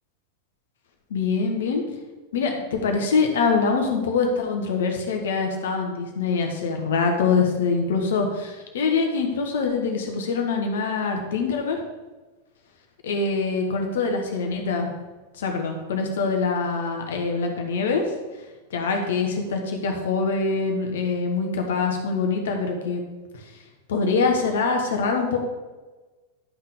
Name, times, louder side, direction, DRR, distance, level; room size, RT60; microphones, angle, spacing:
voice 1, 1.1-1.8 2.3-11.8 13.0-14.9 15.4-18.0 18.7-23.0 23.9-25.4, left 4 dB, 60° left, 3 dB, 1.4 m, -24 dB
11.0 x 5.8 x 3.7 m, 1.2 s
figure-of-eight pair, 90°, 0 cm